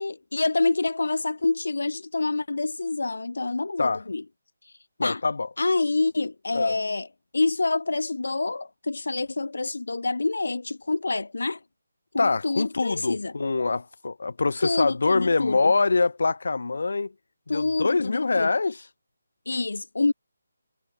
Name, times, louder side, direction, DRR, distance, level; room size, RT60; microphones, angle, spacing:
voice 1, 0.0-4.2 4.6-4.7 5.0-5.2 5.6-7.1 7.3-11.6 12.1-13.3 14.6-15.6 17.5-18.5 19.5-20.1, left 3 dB, 85° left, 6.2 m, -27 dB
voice 2, 5.0-5.5 6.5-6.7 12.2-17.1 17.5-18.8, left 3 dB, 65° left, 7.3 m, -24 dB
hypercardioid pair, 175°, 0 cm